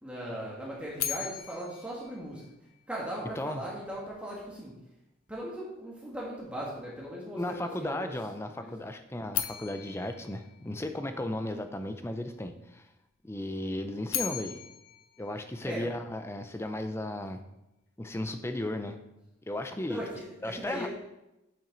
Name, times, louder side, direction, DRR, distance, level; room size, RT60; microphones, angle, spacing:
voice 1, 0.0-2.4 2.9-4.7 5.3-8.1 8.6-8.7 11.1-11.2 15.6-15.9 19.9-20.9, equal, 5° right, -5 dB, 1.5 m, -38 dB
sound 1, 1.0-3.1 9.3-11.5 13.8-16.2, left 11 dB, 80° left, 0.6 m, -38 dB
voice 2, 7.3-12.9 13.2-14.6 15.2-17.4 18.0-19.0 19.5-20.0 20.4-20.9, left 1 dB, 10° left, 7 dB, 0.5 m, -35 dB
8.7 x 5.9 x 3.9 m, 0.92 s
head